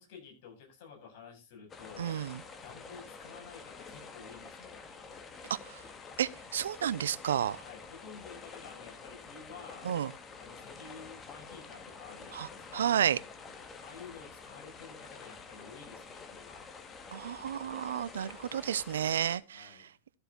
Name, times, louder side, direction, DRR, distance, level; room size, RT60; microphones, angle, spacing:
voice 1, 0.0-2.1 2.6-4.8 7.5-9.9 10.4-12.9 13.8-16.6 19.5-19.9, left 6 dB, 60° left, 7.5 m, -51 dB
sound 1, 1.7-19.4, left 5 dB, 25° left, 2.1 m, -48 dB
voice 2, 2.0-2.4 5.5-5.8 6.2-7.6 9.8-10.1 12.3-12.5 12.7-13.2 17.1-19.7, right 9 dB, 80° right, 0.6 m, -31 dB
14.0 x 7.8 x 4.1 m
hypercardioid pair, 105°, 0 cm